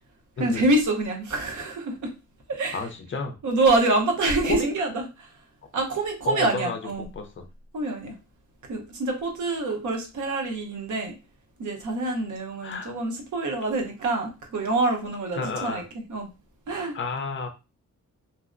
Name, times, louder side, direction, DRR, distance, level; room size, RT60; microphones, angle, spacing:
voice 1, 0.4-2.1 2.5-2.8 3.4-5.3 5.7-7.1 7.7-8.1 8.7-11.1 11.6-16.3 16.7-16.9, right 2 dB, 70° right, 0.8 m, -26 dB
voice 2, 2.7-3.3 4.4-4.7 6.3-6.8 7.2-7.4 12.6-12.9 15.3-15.8 16.9-17.5, left 4 dB, 40° left, 0.4 m, -31 dB
2.7 x 2.1 x 2.4 m
wide cardioid pair, 165°, 31 cm